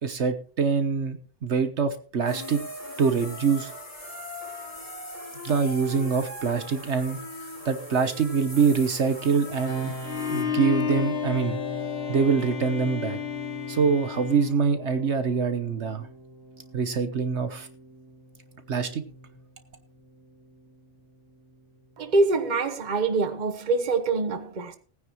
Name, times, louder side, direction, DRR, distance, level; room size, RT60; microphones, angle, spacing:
voice 1, 0.0-2.6 3.0-3.7 5.4-9.9 10.3-11.6 12.1-13.2 13.7-16.1 16.7-17.7 18.7-19.0, right 5 dB, 65° right, 1.3 m, -25 dB
sound 1, 2.3-10.4, left 1 dB, 30° left, 5.0 m, -40 dB
sound 2, 9.6-22.5, equal, 15° right, 2.5 m, -41 dB
Bowed string instrument, 10.0-15.1, left 10 dB, 60° left, 1.4 m, -32 dB
voice 2, 22.0-24.8, right 3 dB, 40° right, 1.2 m, -25 dB
19.0 x 9.6 x 3.1 m
omnidirectional pair, 1.3 m